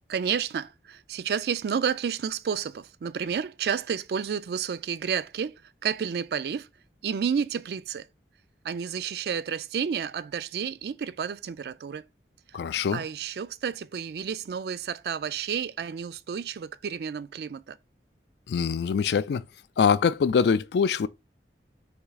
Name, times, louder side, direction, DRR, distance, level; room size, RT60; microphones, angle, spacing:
voice 1, 0.1-5.5 5.8-6.7 7.0-8.1 8.6-12.0 12.9-17.8, right 7 dB, 65° right, 0.3 m, -30 dB
voice 2, 12.5-13.0 18.5-19.4 19.8-21.1, left 6 dB, 70° left, 0.3 m, -23 dB
3.5 x 3.1 x 4.8 m
head